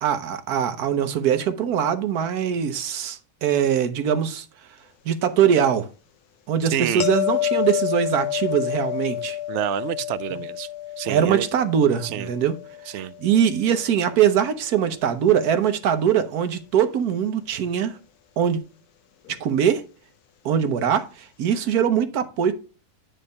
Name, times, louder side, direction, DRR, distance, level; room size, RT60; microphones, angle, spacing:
voice 1, 0.0-4.5 5.0-5.9 6.5-9.4 11.1-12.6 12.9-18.0 18.4-18.6 19.3-19.8 20.4-22.5, right 8 dB, 85° right, 1.4 m, -22 dB
voice 2, 6.7-7.0 9.5-10.7 11.0-11.5 12.0-12.3 12.9-13.1, right 12 dB, 65° right, 0.7 m, -28 dB
sound 1, 7.0-14.0 19.3-19.4, left 13 dB, 90° left, 1.2 m, -29 dB
9.6 x 3.3 x 5.3 m
omnidirectional pair, 1.6 m